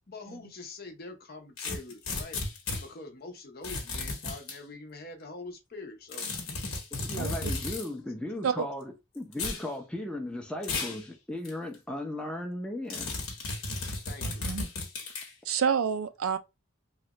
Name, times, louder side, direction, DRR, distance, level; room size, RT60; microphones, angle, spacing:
voice 1, 0.1-6.3 13.9-14.8, left 3 dB, 45° left, 0.7 m, -45 dB
sound 1, 1.6-2.8 3.6-4.6 6.1-7.9 9.3-9.6 10.6-11.0 11.4-11.5 12.9-15.3, left 3 dB, 85° left, 1.1 m, -34 dB
voice 2, 6.9-13.2, left 1 dB, 5° left, 0.6 m, -36 dB
voice 3, 15.5-16.4, right 7 dB, 80° right, 0.4 m, -28 dB
3.2 x 2.4 x 2.9 m
head